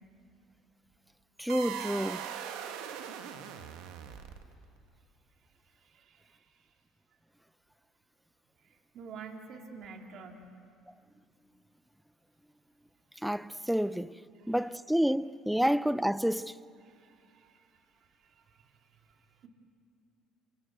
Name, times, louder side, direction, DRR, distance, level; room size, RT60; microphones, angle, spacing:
voice 1, 1.4-2.3 13.2-14.2 14.5-16.6, equal, 5° right, 0.6 m, -29 dB
sound 1, 1.5-4.6, right 9 dB, 80° right, 1.7 m, -40 dB
voice 2, 5.7-6.7 8.6-10.5 14.4-14.6 16.8-19.5, right 5 dB, 60° right, 2.9 m, -51 dB
27.5 x 23.5 x 8.0 m
supercardioid pair, 80°, 0 cm